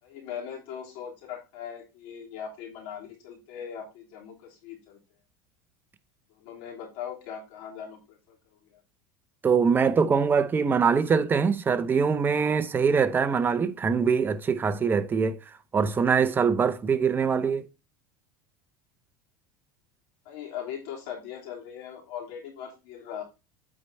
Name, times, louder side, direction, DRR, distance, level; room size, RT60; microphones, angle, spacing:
voice 1, 0.0-5.0 6.4-8.4 8.6-8.8 20.2-23.2, left 8 dB, 65° left, 3.1 m, -40 dB
voice 2, 9.4-15.4 15.7-17.6, right 6 dB, 20° right, 0.6 m, -23 dB
8.7 x 4.6 x 4.1 m
supercardioid pair, 140°, 11 cm